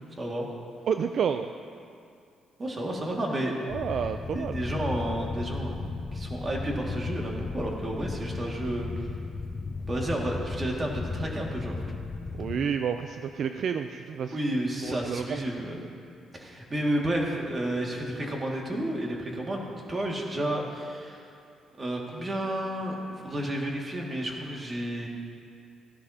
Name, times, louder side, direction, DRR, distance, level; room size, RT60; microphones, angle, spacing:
voice 1, 0.2-0.5 2.6-3.7 4.3-9.1 9.9-11.8 14.3-15.8 16.3-21.3 21.8-25.1, right 1 dB, 30° right, -1 dB, 2.1 m, -31 dB
voice 2, 0.9-1.5 3.7-4.6 12.3-14.4 14.8-15.5, right 7 dB, 65° right, 8 dB, 0.4 m, -30 dB
sound 1, 3.7-12.6, left 4 dB, 25° left, 0.8 m, -35 dB
16.0 x 11.5 x 2.8 m, 2.4 s
cardioid pair, 90°, 0 cm